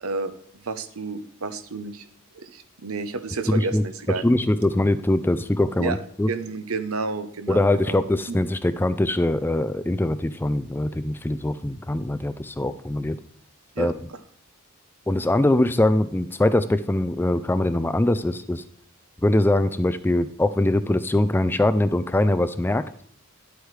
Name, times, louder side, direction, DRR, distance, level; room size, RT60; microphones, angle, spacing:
voice 1, 0.0-2.1 2.3-4.2 5.8-6.0 6.3-8.0 8.3-8.4 13.8-14.2, right 3 dB, 75° right, 11 dB, 0.9 m, -31 dB
voice 2, 3.5-3.8 4.2-6.3 7.5-13.2 13.8-13.9 15.1-18.6 19.2-22.9, left 1 dB, 10° left, 12 dB, 0.3 m, -22 dB
10.5 x 8.0 x 3.2 m, 0.64 s
head